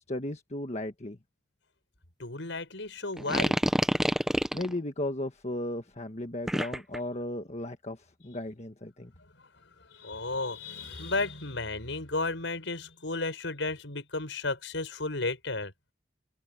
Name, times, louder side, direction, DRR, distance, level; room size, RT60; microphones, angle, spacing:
voice 1, 0.1-1.2 4.5-8.0 8.2-9.1, left 1 dB, 35° left, 1.5 m, -35 dB
voice 2, 2.2-3.6 9.9-15.7, left 3 dB, 75° left, 5.5 m, -33 dB
sound 1, 3.2-4.7 6.5-7.0, equal, ahead, 0.9 m, -27 dB
head